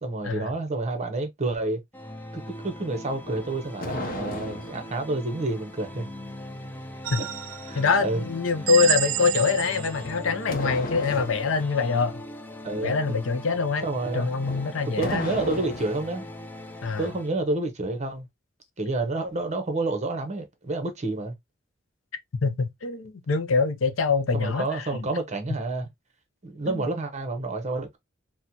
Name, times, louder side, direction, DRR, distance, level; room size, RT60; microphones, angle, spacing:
voice 1, 0.0-1.8 2.3-6.1 7.2-7.3 7.6-8.2 12.6-12.9 13.8-14.3 15.0-16.3 17.0-18.3 18.8-21.3 24.3-25.9 26.4-28.0, right 2 dB, 35° right, 0.8 m, -29 dB
sound 1, 1.9-17.3, left 1 dB, 10° left, 0.4 m, -40 dB
sound 2, 3.2-5.0 9.9-11.5 14.4-16.1, left 1 dB, 45° left, 0.7 m, -35 dB
sound 3, 7.0-7.8 8.7-10.1, right 14 dB, 90° right, 0.3 m, -29 dB
voice 2, 7.7-12.2 12.8-13.8 14.1-15.3 16.8-17.1 22.4-25.1 26.7-26.9, left 5 dB, 80° left, 0.6 m, -24 dB
4.2 x 2.1 x 2.7 m
head